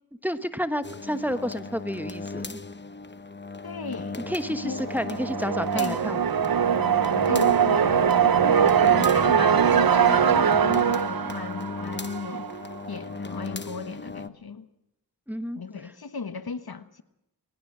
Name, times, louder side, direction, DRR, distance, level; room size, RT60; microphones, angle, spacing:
voice 1, 0.2-2.6 4.2-6.3 15.3-15.6, equal, 5° right, 1.3 m, -30 dB
sound 1, 0.8-14.3, left 3 dB, 25° left, 0.9 m, -37 dB
voice 2, 3.6-4.2 4.5-5.2 5.7-6.0 7.3-12.5 12.9-14.7 15.5-17.0, left 5 dB, 65° left, 1.3 m, -36 dB
sound 2, 4.8-12.6, right 8 dB, 60° right, 0.7 m, -22 dB
22.0 x 19.5 x 6.3 m
cardioid pair, 45°, 40 cm